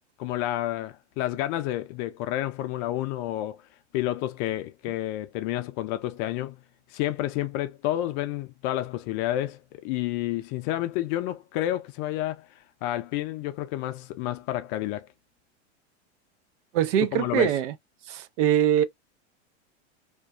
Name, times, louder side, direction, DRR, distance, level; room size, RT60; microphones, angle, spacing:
voice 1, 0.2-3.6 3.9-6.6 6.9-15.1 17.1-17.5, left 14 dB, 45° left, 0.4 m, -30 dB
voice 2, 16.7-17.7 18.1-18.8, right 11 dB, 75° right, 0.6 m, -23 dB
2.5 x 2.3 x 2.2 m
hypercardioid pair, 115°, 36 cm